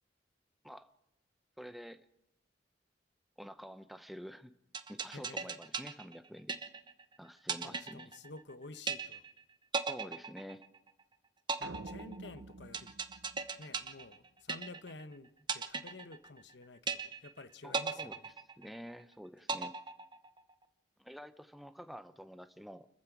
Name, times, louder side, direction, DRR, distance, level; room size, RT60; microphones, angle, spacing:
voice 1, 1.6-2.0 3.4-4.5 4.9-6.6 7.2-8.1 9.9-10.6 17.6-19.8 21.0-22.9, equal, ahead, 10 dB, 0.8 m, -49 dB
sound 1, 4.7-7.0 7.5-8.5 8.9-9.4 9.7-11.0 11.5-15.0 15.5-16.5 16.9-17.4 17.7-19.0 19.5-20.5, right 4 dB, 25° right, 1.0 m, -37 dB
voice 2, 5.1-5.5 7.5-9.2 11.6-13.0 13.6-18.3, left 2 dB, 75° left, 11 dB, 1.1 m, -51 dB
sound 2, 11.6-14.1, right 3 dB, 90° right, 0.7 m, -49 dB
29.5 x 15.0 x 6.1 m, 0.87 s
head